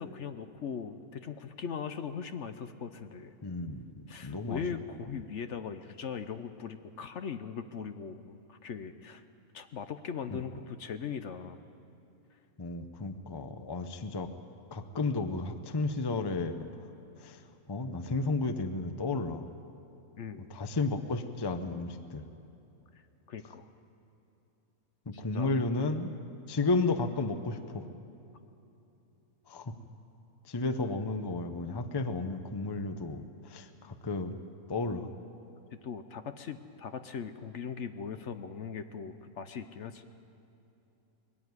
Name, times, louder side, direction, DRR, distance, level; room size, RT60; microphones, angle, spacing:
voice 1, 0.0-3.3 4.1-9.2 9.5-11.6 20.1-20.5 23.3-23.6 25.3-25.5 35.7-40.0, left 6 dB, 60° left, 9 dB, 1.0 m, -40 dB
voice 2, 3.4-3.9 4.2-4.6 12.6-14.3 14.7-16.6 17.2-17.4 17.7-19.5 20.5-22.2 25.1-26.1 26.5-27.8 29.5-29.7 30.5-33.2 33.5-34.4 34.7-35.1, left 3 dB, 25° left, 9 dB, 0.6 m, -32 dB
21.0 x 13.5 x 9.6 m, 2.9 s
omnidirectional pair, 1.5 m